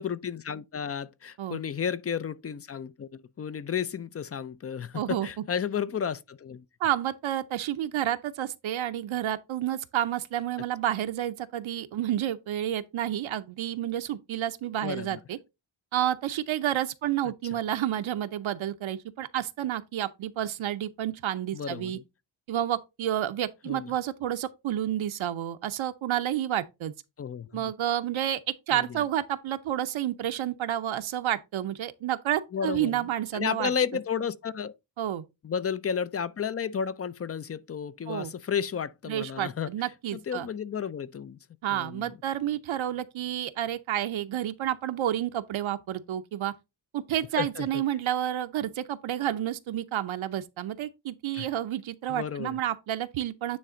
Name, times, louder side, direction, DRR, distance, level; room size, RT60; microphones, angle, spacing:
voice 1, 0.0-6.6 14.8-15.2 21.5-22.0 23.7-23.9 27.2-27.7 28.7-29.0 32.5-33.0 33.3-34.7 35.4-39.7 40.1-41.4 41.7-42.1 47.4-47.8 51.3-51.5 52.1-52.6, left 7 dB, 30° left, 0.4 m, -32 dB
voice 2, 4.9-5.3 6.8-15.4 15.9-22.0 22.5-26.9 27.5-33.7 35.0-35.2 38.1-38.3 39.1-40.5 41.6-46.5 46.9-53.6, right 11 dB, 75° right, 0.7 m, -30 dB
9.6 x 3.3 x 3.7 m
cardioid pair, 85°, 48 cm